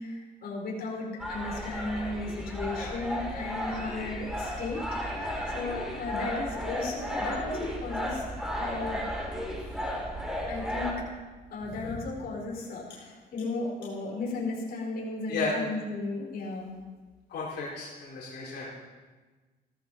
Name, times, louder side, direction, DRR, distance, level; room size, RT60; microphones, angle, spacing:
voice 1, 0.0-8.2 8.6-9.0 10.5-11.1 11.5-16.7, left 3 dB, 60° left, -3 dB, 5.1 m, -35 dB
sound 1, 1.2-10.9, equal, 5° right, 3.6 m, -34 dB
voice 2, 17.3-18.7, left 4 dB, 80° left, -7 dB, 4.4 m, -34 dB
17.0 x 14.0 x 4.4 m, 1.3 s
cardioid pair, 105°, 17 cm